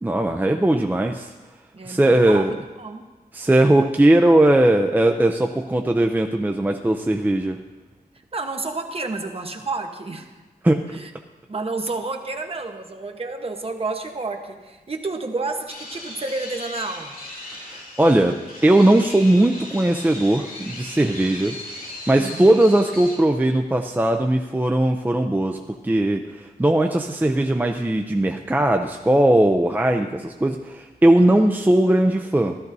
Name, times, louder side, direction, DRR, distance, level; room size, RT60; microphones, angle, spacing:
voice 1, 0.0-1.3 1.9-2.5 3.3-7.6 10.6-10.8 17.6-21.6 22.1-32.6, right 1 dB, 10° right, 4 dB, 0.5 m, -19 dB
voice 2, 1.7-3.1 8.3-10.3 10.9-11.1 11.5-17.2 22.2-22.5, right 3 dB, 40° right, 4 dB, 1.1 m, -30 dB
sound 1, 15.7-23.1, left 1 dB, 65° left, 2.3 m, -38 dB
14.5 x 13.0 x 2.7 m, 1.2 s
wide cardioid pair, 115°, 16 cm